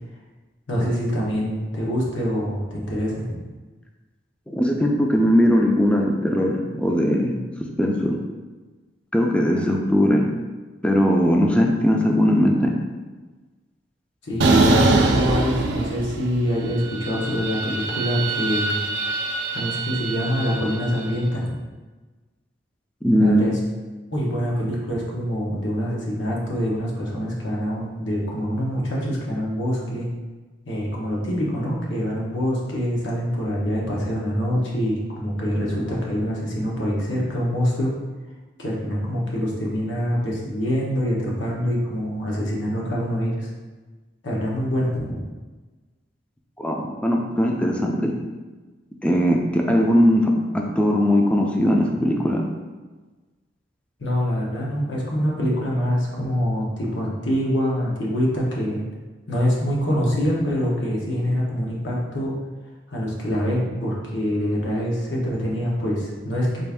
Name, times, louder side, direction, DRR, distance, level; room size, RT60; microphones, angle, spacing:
voice 1, 0.7-3.3 14.2-18.8 19.5-21.6 23.2-23.5 24.1-30.1 30.7-37.9 38.6-43.5 44.2-45.2 54.0-58.8 59.3-62.3 62.9-66.6, equal, 85° left, -4 dB, 1.0 m, -25 dB
voice 2, 4.5-7.3 7.8-8.2 9.1-10.3 10.8-12.7 23.0-23.4 46.6-48.1 49.0-52.4, equal, 5° left, 0 dB, 0.4 m, -19 dB
sound 1, 14.4-16.4 16.7-21.0, right 2 dB, 70° right, 0.4 m, -23 dB
4.1 x 2.5 x 3.5 m, 1.3 s
head